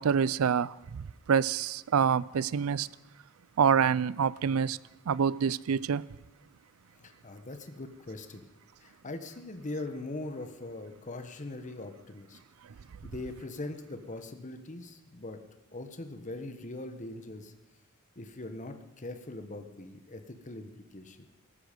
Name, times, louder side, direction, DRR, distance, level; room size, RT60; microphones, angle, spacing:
voice 1, 0.0-2.9 3.6-4.8 5.1-6.0, right 7 dB, 85° right, 0.4 m, -26 dB
voice 2, 7.0-8.5 8.8-12.4 13.0-15.4 15.7-17.5 18.1-21.2, left 2 dB, 35° left, 1.2 m, -41 dB
17.5 x 14.0 x 5.2 m
head